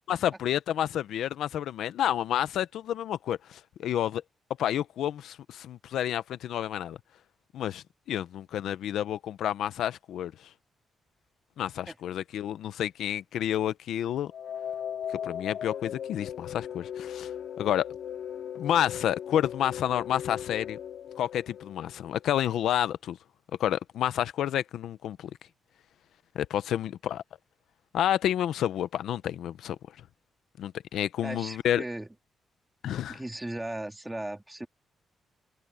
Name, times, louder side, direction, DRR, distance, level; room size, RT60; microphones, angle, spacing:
voice 1, 0.1-4.2 4.6-7.0 7.5-10.5 11.6-14.3 15.1-17.9 18.5-20.8 21.2-23.2 23.6-25.3 26.3-27.2 27.9-29.8 30.6-31.8 32.8-33.2, left 11 dB, 85° left, 0.7 m, -30 dB
sound 1, 14.3-22.3, left 9 dB, 60° left, 2.9 m, -38 dB
voice 2, 31.2-32.1 33.1-34.7, right 1 dB, 10° right, 2.2 m, -37 dB
wide cardioid pair, 170°, 0 cm